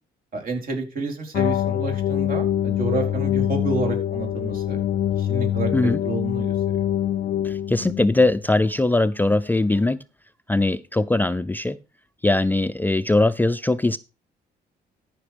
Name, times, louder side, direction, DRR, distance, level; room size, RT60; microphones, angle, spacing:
voice 1, 0.3-4.8 5.2-6.5, right 3 dB, 55° right, 3 dB, 4.5 m, -29 dB
sound 1, 1.3-8.4, left 11 dB, 60° left, 0.5 m, -24 dB
voice 2, 7.4-10.0 10.5-11.8 12.2-14.0, left 2 dB, 10° left, 14 dB, 0.4 m, -21 dB
13.5 x 5.9 x 5.1 m, 0.30 s
cardioid pair, 105°, 17 cm